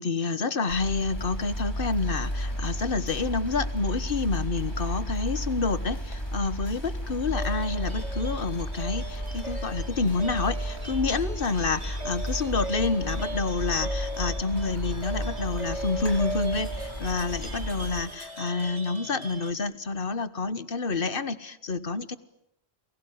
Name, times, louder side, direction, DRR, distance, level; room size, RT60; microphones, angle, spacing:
voice 1, 0.0-22.2, left 4 dB, 60° left, 15 dB, 1.5 m, -28 dB
sound 1, 0.7-18.0, equal, 25° left, 5.6 m, -33 dB
sound 2, 7.3-19.5, right 2 dB, 40° right, 4.9 m, -38 dB
29.0 x 21.0 x 9.5 m, 0.80 s
omnidirectional pair, 1.1 m